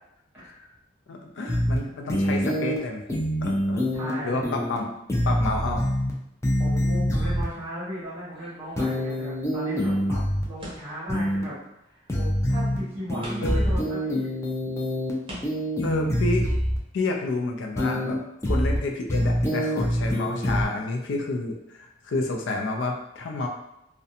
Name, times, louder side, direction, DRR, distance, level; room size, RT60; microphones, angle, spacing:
voice 1, 0.4-0.7 1.1-3.0 3.4-3.9 4.2-4.9 5.2-5.9 13.4-13.7 15.8-16.5 16.9-18.2 18.5-23.5, left 2 dB, 85° left, 2 dB, 0.4 m, -30 dB
sound 1, 1.5-1.8 2.1-2.8 3.1-4.1 4.4-4.8 5.1-6.1 6.4-7.4 8.8-10.4 11.1-11.4 12.1-12.8 13.1-15.1 15.4-16.8 17.7-18.1 18.4-18.8 19.1-20.6, equal, 15° left, 0.4 m, -25 dB
voice 2, 3.9-4.7 6.6-11.6 11.8-14.4, equal, 10° right, -9 dB, 1.0 m, -37 dB
sound 2, 8.3-9.3 10.6-11.1 12.4-12.5 13.2-13.7 14.5-14.6 15.2-15.8, equal, 30° right, 0.7 m, -42 dB
2.5 x 2.1 x 2.7 m, 0.82 s
head